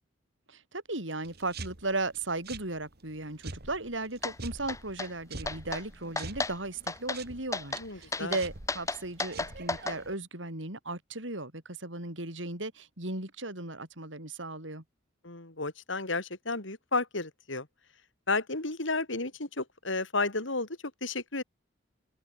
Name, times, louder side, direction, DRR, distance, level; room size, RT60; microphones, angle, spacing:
voice 1, 0.5-14.8, right 2 dB, 75° right, 7.2 m, -36 dB
sound 1, 1.2-10.1, right 3 dB, 55° right, 3.0 m, -46 dB
sound 2, 4.2-4.4 4.7-5.1 5.5-5.8 6.2-6.5 6.9-7.2 7.5-7.8 8.1-10.0, left 3 dB, 15° left, 1.3 m, -33 dB
voice 2, 7.8-8.4 15.2-17.7 18.3-20.7 21.0-21.4, left 3 dB, 80° left, 4.3 m, -32 dB
head